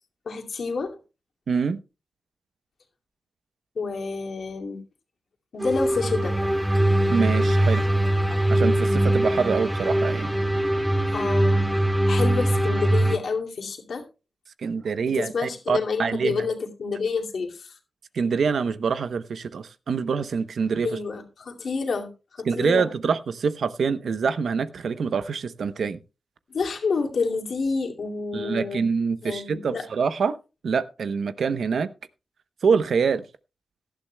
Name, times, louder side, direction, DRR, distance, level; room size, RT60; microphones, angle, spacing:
voice 1, 0.3-0.9 3.8-4.8 5.5-6.4 11.1-11.7 12.1-14.0 15.2-17.8 20.8-22.9 26.5-28.8 29.2-29.8, left 4 dB, 75° left, 2 dB, 2.3 m, -29 dB
voice 2, 1.5-1.8 7.1-7.8 8.5-10.3 14.6-16.4 18.1-20.9 22.5-26.0 28.3-30.4 30.6-31.9 32.6-33.2, right 5 dB, 80° right, 13 dB, 0.8 m, -25 dB
sound 1, 5.6-13.2, right 1 dB, 5° right, 2.1 m, -22 dB
17.5 x 12.0 x 2.2 m, 0.31 s
cardioid pair, 65°, 0 cm